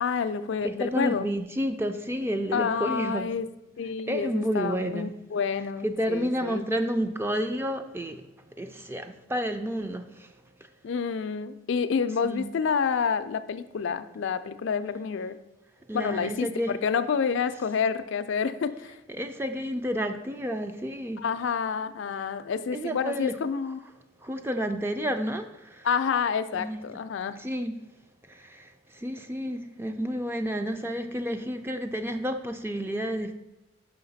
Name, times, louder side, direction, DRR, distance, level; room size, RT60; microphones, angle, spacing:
voice 1, 0.0-1.3 2.5-3.5 3.8-6.6 10.8-15.4 15.9-19.0 21.2-23.8 25.8-27.4, left 6 dB, 65° left, 11 dB, 0.4 m, -28 dB
voice 2, 0.6-3.3 4.1-5.1 5.8-8.2 8.6-10.1 12.2-12.5 15.9-16.8 19.1-21.2 22.7-23.3 24.2-25.5 25.8-25.9 26.5-26.8 27.4-27.8 28.4-28.7 29.0-33.3, equal, 10° right, 7 dB, 0.3 m, -30 dB
5.7 x 5.7 x 4.0 m, 1.0 s
head